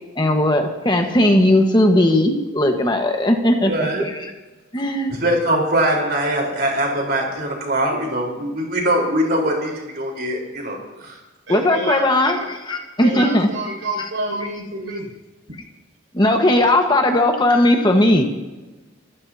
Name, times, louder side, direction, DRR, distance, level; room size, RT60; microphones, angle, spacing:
voice 1, 0.1-4.3 4.7-5.1 11.5-13.5 14.0-14.1 14.4-14.5 16.1-18.2, left 1 dB, 25° left, 3 dB, 1.4 m, -17 dB
voice 2, 3.7-4.0 5.2-11.1, right 1 dB, 50° right, 0 dB, 4.3 m, -22 dB
voice 3, 11.5-12.0 12.4-12.5 13.0-15.1, right 2 dB, 85° right, -1 dB, 6.3 m, -28 dB
26.0 x 15.0 x 2.9 m, 1.2 s
head